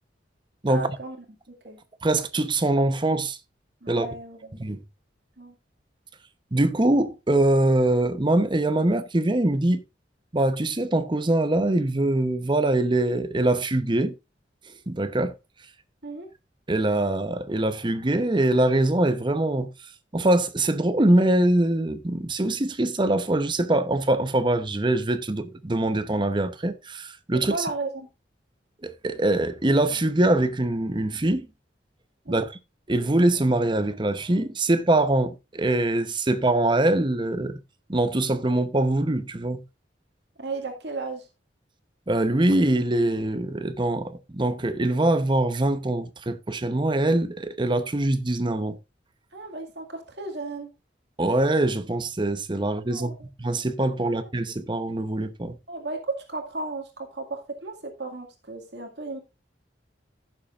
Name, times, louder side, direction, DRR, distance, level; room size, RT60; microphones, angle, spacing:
voice 1, 0.7-1.2 1.6-1.8 3.8-4.6 5.4-5.6 16.0-16.3 27.5-28.1 32.2-32.5 40.4-41.3 49.3-50.7 52.6-53.2 54.0-54.3 55.7-59.2, right 3 dB, 65° right, 2.1 m, -35 dB
voice 2, 2.0-3.4 3.9-4.1 4.6-4.8 6.5-9.8 10.3-14.1 14.9-15.3 16.7-19.7 20.1-27.7 28.8-31.5 32.3-32.5 32.9-37.6 37.9-39.6 42.1-48.8 51.2-53.1 53.4-55.6, right 1 dB, 25° right, 0.8 m, -23 dB
16.0 x 7.2 x 2.5 m
head